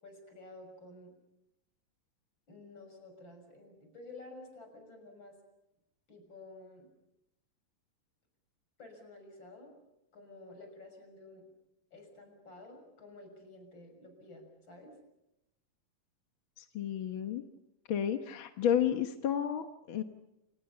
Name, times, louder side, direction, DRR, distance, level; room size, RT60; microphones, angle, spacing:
voice 1, 0.0-1.1 2.5-5.4 6.1-6.9 8.8-9.9 10.1-11.5 11.9-15.0, left 2 dB, 35° left, 5 dB, 6.9 m, -52 dB
voice 2, 16.6-17.4 17.9-20.0, left 9 dB, 60° left, 6 dB, 1.4 m, -31 dB
28.5 x 28.0 x 5.7 m, 0.88 s
omnidirectional pair, 3.7 m